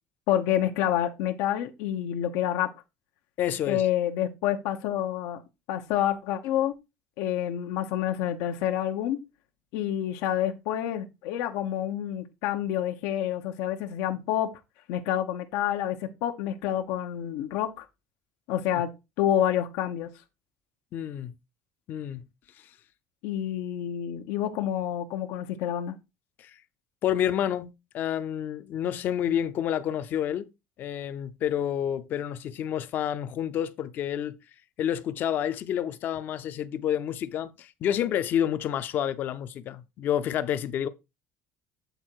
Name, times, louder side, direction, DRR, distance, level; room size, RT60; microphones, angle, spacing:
voice 1, 0.3-2.7 3.7-5.4 5.7-6.7 7.2-9.2 9.7-14.5 14.9-17.8 18.5-18.9 19.2-20.1 23.2-25.9, left 11 dB, 90° left, 0.9 m, -28 dB
voice 2, 3.4-3.9 20.9-21.3 21.9-22.2 26.4-26.6 27.0-30.5 30.8-34.4 34.8-40.9, left 10 dB, 40° left, 0.5 m, -29 dB
8.0 x 3.9 x 4.5 m
cardioid pair, 180°, 5 cm